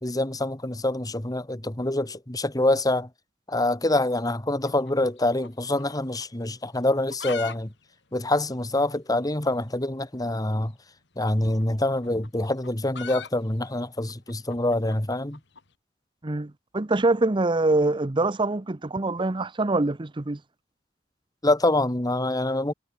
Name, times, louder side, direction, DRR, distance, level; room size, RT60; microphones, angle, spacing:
voice 1, 0.0-3.1 3.5-7.7 8.1-10.7 11.2-15.4 21.4-22.7, left 1 dB, 20° left, 1.6 m, -25 dB
sound 1, 4.6-5.9 6.2-6.3 6.8-7.6 7.8-7.9 8.1-8.2 8.8-8.9 10.1-10.3 11.4-15.7, left 6 dB, 65° left, 2.3 m, -41 dB
voice 2, 16.2-20.4, right 2 dB, 25° right, 0.7 m, -24 dB
head